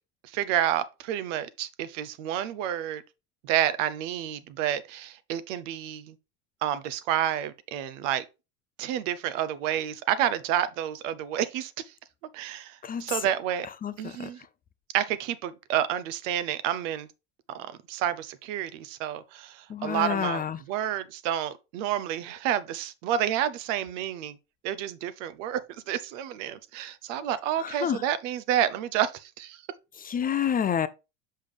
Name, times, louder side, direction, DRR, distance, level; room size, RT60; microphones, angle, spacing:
voice 1, 0.3-3.0 3.4-6.1 6.6-8.2 8.8-11.7 12.3-13.7 14.0-14.4 14.9-17.1 17.5-24.4 24.6-25.6 25.9-29.6, right 11 dB, 75° right, 0.8 m, -29 dB
voice 2, 13.8-14.3 19.7-20.6 27.6-28.0 30.0-30.9, left 8 dB, 25° left, 0.4 m, -28 dB
5.6 x 5.1 x 3.3 m
supercardioid pair, 90°, 38 cm